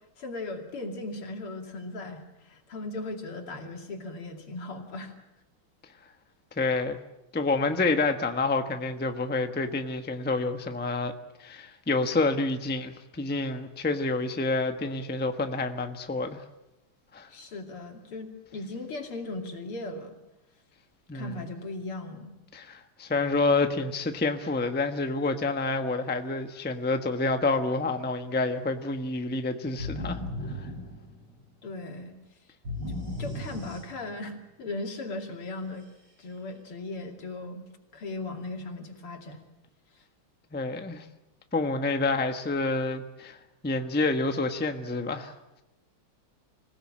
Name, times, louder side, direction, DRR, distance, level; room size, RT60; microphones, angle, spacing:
voice 1, 0.2-5.2 17.3-20.2 21.1-22.3 31.6-32.2 32.9-35.9 36.2-39.4, left 2 dB, 80° left, 3 dB, 3.5 m, -38 dB
voice 2, 6.6-7.0 7.3-11.1 11.4-16.4 17.1-17.3 21.1-21.4 22.5-30.2 30.5-30.7 40.5-41.0 41.5-43.4 43.6-45.3, left 3 dB, 5° left, 6 dB, 0.8 m, -28 dB
sound 1, 29.8-31.5 32.6-34.3, left 1 dB, 50° right, 5.7 m, -36 dB
26.0 x 17.0 x 8.7 m, 0.97 s
omnidirectional pair, 2.4 m